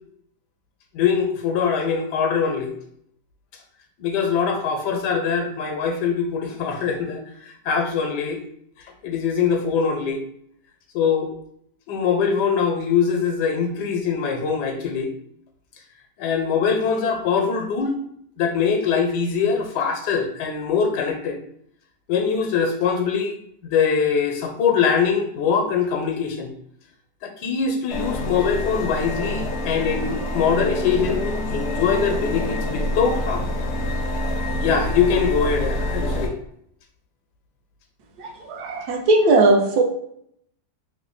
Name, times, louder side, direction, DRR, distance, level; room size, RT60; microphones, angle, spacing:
voice 1, 0.9-2.7 4.0-8.4 9.0-10.2 10.9-11.3 11.9-15.1 16.2-17.9 18.4-21.4 22.1-23.4 23.6-26.5 27.2-33.5 34.6-36.3, left 6 dB, 85° left, 4 dB, 1.2 m, -22 dB
sound 1, 27.9-36.3, left 1 dB, 70° left, 0.6 m, -26 dB
voice 2, 38.5-39.8, right 2 dB, 75° right, 2 dB, 1.1 m, -17 dB
3.2 x 2.1 x 3.6 m, 0.69 s
omnidirectional pair, 1.7 m